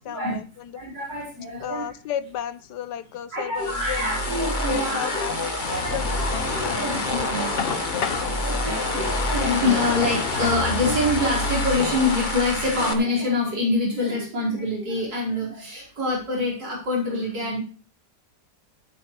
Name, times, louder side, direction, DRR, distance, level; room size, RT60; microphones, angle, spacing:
voice 1, 0.0-0.7 1.6-4.1 4.7-6.8 7.5-9.0, left 10 dB, 75° left, 14 dB, 1.4 m, -34 dB
voice 2, 0.7-1.9 3.3-5.3 5.7-6.3 6.5-7.8 8.4-17.6, left 2 dB, 80° right, -3 dB, 5.6 m, -26 dB
sound 1, 3.6-12.9, left 1 dB, 30° left, 1.7 m, -27 dB
sound 2, 5.6-11.5, left 7 dB, 50° left, 0.8 m, -31 dB
17.5 x 8.8 x 3.2 m, 0.36 s
omnidirectional pair, 1.9 m